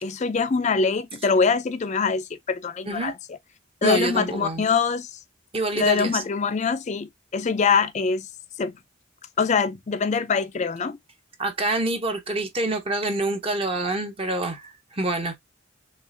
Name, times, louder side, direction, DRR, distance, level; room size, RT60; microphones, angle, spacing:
voice 1, 0.0-3.1 3.8-5.1 5.8-8.3 8.6-8.7 9.4-11.0, left 5 dB, 35° left, 0.4 m, -23 dB
voice 2, 3.8-4.7 5.5-6.2 11.4-15.4, right 2 dB, 30° right, 0.8 m, -26 dB
6.2 x 2.4 x 2.6 m
head